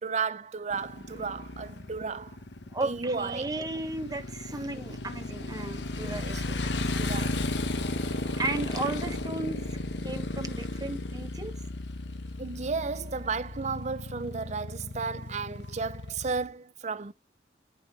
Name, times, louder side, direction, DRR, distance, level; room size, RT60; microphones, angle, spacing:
voice 1, 0.0-2.4 2.8-3.5 6.0-7.4 12.4-17.1, right 4 dB, 40° right, 0.5 m, -34 dB
Motorcycle, 0.7-16.5, left 2 dB, 80° left, 1.0 m, -35 dB
voice 2, 2.7-7.5 8.4-9.6 10.0-11.5, right 2 dB, 20° right, 1.2 m, -35 dB
11.0 x 5.4 x 3.2 m
head